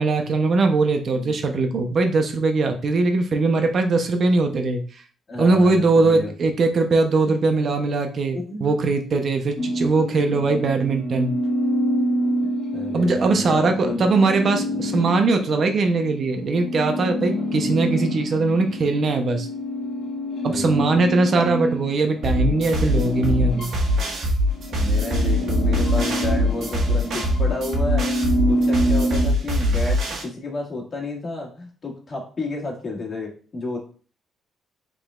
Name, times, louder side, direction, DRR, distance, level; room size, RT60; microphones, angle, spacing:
voice 1, 0.0-4.8 5.4-11.3 12.9-19.5 20.4-23.7, right 3 dB, 50° right, 5 dB, 0.7 m, -21 dB
voice 2, 5.3-6.3 7.2-7.3 8.3-8.7 10.3-10.7 12.4-14.1 14.7-14.9 20.5-21.1 21.4-21.5 24.7-33.8, left 2 dB, 40° left, -2 dB, 1.7 m, -32 dB
sound 1, 9.6-24.1 24.5-29.3, equal, 65° left, 1.4 m, -27 dB
sound 2, 22.2-30.2, equal, 70° right, 1.3 m, -22 dB
5.0 x 3.8 x 2.4 m, 0.40 s
cardioid pair, 90°, 0 cm